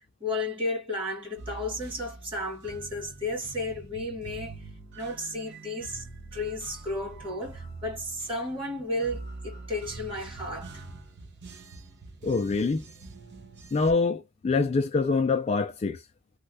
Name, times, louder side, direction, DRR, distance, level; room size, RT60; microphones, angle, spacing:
voice 1, 0.2-4.7 5.0-6.0 6.3-10.8, left 1 dB, 25° right, 1.9 m, -33 dB
sound 1, 1.4-13.9, right 3 dB, 50° right, 0.8 m, -44 dB
voice 2, 12.2-12.8 13.7-16.0, left 4 dB, 30° left, 0.3 m, -25 dB
3.1 x 2.2 x 2.7 m
head